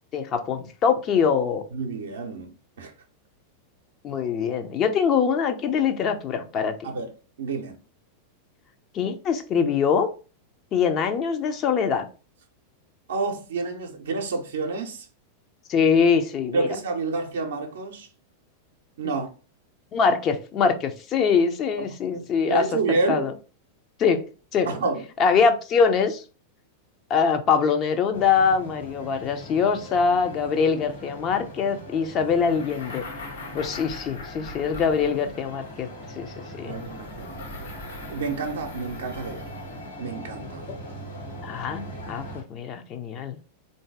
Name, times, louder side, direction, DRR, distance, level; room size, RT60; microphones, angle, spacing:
voice 1, 0.1-1.6 4.0-6.9 8.9-10.1 10.7-12.1 15.7-16.7 19.9-23.3 24.0-24.2 24.5-24.7 25.2-26.2 27.1-33.0 33.5-35.9 36.2-36.8 40.7-40.8 41.4-43.4, left 6 dB, 30° left, 0.6 m, -23 dB
voice 2, 1.7-2.9 6.8-7.1 7.4-7.8 13.1-15.1 16.5-18.1 19.0-19.3 22.1-23.3 24.7-25.0 36.7-37.7 38.1-39.5 40.0-40.7, right 3 dB, 65° right, 0.6 m, -29 dB
sound 1, 28.1-42.4, equal, 85° left, 1.6 m, -40 dB
sound 2, 32.3-35.6 36.7-39.8, left 2 dB, 65° left, 1.1 m, -42 dB
3.8 x 2.7 x 3.6 m
figure-of-eight pair, 90°, 0 cm